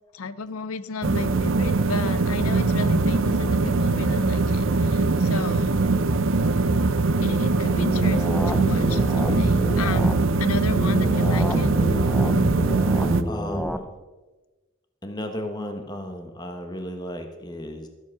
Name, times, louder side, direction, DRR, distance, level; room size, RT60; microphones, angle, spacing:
voice 1, 0.1-5.8 7.2-11.7, left 4 dB, 90° left, 15 dB, 0.6 m, -33 dB
sound 1, 1.0-13.2, right 3 dB, 70° right, 0.6 m, -22 dB
sound 2, 7.8-10.2 10.8-13.8, equal, 5° left, 0.5 m, -29 dB
voice 2, 13.3-13.9 15.0-17.9, left 1 dB, 20° left, 5 dB, 1.0 m, -34 dB
13.5 x 7.2 x 5.9 m, 1.2 s
head